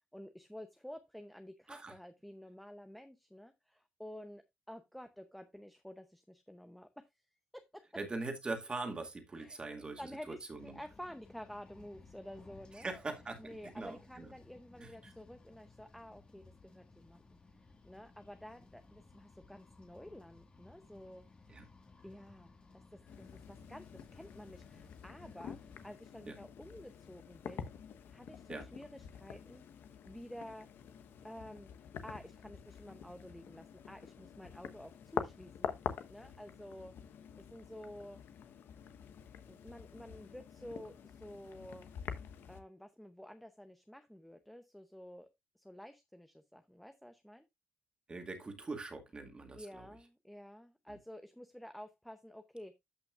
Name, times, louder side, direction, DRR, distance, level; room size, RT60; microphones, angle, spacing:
voice 1, 0.1-7.1 7.5-7.8 9.3-12.9 13.4-17.4 17.8-21.2 22.0-22.5 22.9-23.9 24.1-27.7 28.1-29.6 30.0-30.7 31.2-31.7 32.0-35.7 36.1-36.9 37.4-38.2 39.5-41.9 42.5-45.3 45.6-47.5 49.5-52.8, equal, ahead, 0.7 m, -51 dB
voice 2, 8.0-10.8 12.8-14.3 14.8-15.1 21.5-21.7 26.3-26.4 28.5-28.7 48.1-49.9 50.9-51.0, right 3 dB, 25° right, 2.2 m, -42 dB
sound 1, 10.5-25.9, left 3 dB, 25° left, 1.6 m, -60 dB
sound 2, 23.1-42.6, left 8 dB, 65° left, 1.1 m, -47 dB
13.0 x 5.8 x 2.4 m
cardioid pair, 130°, 4 cm